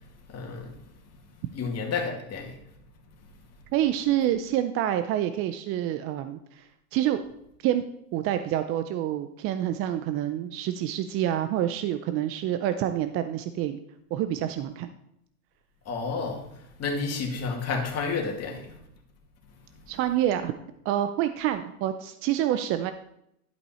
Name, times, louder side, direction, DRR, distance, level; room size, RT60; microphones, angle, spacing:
voice 1, 0.3-0.7 1.5-2.6 15.9-18.8, left 4 dB, 35° left, 2.1 m, -31 dB
voice 2, 3.7-7.2 7.6-7.8 8.1-13.8 14.1-14.9 19.9-20.5 20.8-22.9, right 12 dB, 30° right, 0.4 m, -27 dB
11.0 x 5.3 x 4.3 m
hypercardioid pair, 105°, 45 cm